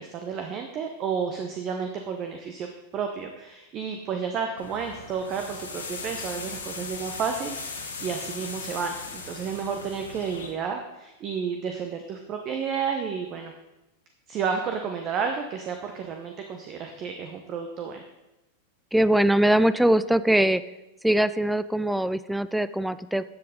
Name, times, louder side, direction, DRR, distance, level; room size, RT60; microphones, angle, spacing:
voice 1, 0.0-2.7 2.9-13.5 14.3-18.0, right 6 dB, 35° right, 5 dB, 0.9 m, -31 dB
sound 1, 4.6-10.5, left 4 dB, 75° left, 1.6 m, -38 dB
voice 2, 18.9-20.6 21.0-23.2, right 1 dB, ahead, 15 dB, 0.3 m, -22 dB
12.5 x 7.6 x 3.7 m, 0.97 s
figure-of-eight pair, 90°, 0 cm